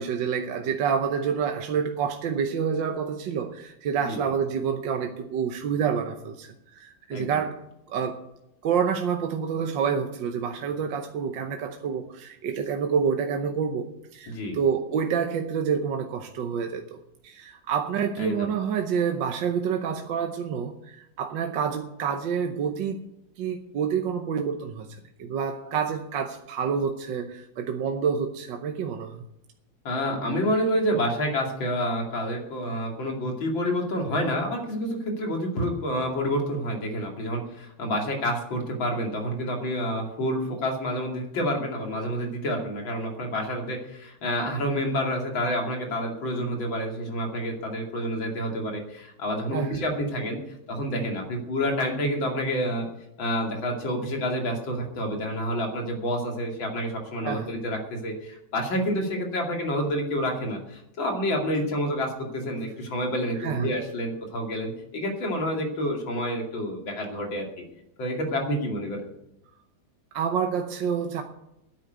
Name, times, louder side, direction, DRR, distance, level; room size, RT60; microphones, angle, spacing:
voice 1, 0.0-7.6 7.9-8.2 8.6-23.0 23.4-29.2 49.5-49.8 57.2-57.5 63.4-63.7 70.1-71.2, right 7 dB, 75° right, 5 dB, 1.6 m, -28 dB
voice 2, 7.1-7.4 14.3-14.6 18.2-18.5 29.8-50.4 50.7-52.9 53.2-67.6 68.0-69.0, equal, 85° left, 1 dB, 3.3 m, -28 dB
10.0 x 8.6 x 9.3 m, 0.83 s
omnidirectional pair, 2.1 m